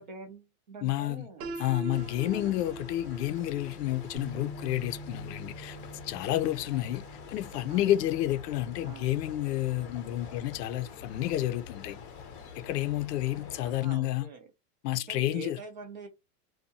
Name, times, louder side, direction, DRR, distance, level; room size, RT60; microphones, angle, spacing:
voice 1, 0.0-1.5 2.2-2.6 7.5-7.9 8.8-9.2 13.6-14.5 14.9-16.1, right 4 dB, 30° right, 0.4 m, -45 dB
voice 2, 0.8-1.2 1.6-5.8 6.0-7.0 7.3-12.0 12.6-14.3 14.8-15.6, left 14 dB, 85° left, 0.6 m, -30 dB
Piano, 1.4-7.3, right 2 dB, 85° right, 0.8 m, -44 dB
sound 1, 1.9-13.8, left 6 dB, 35° left, 0.6 m, -46 dB
Bass guitar, 4.1-10.4, right 2 dB, ahead, 0.8 m, -48 dB
2.7 x 2.2 x 2.7 m
supercardioid pair, 170°, 47 cm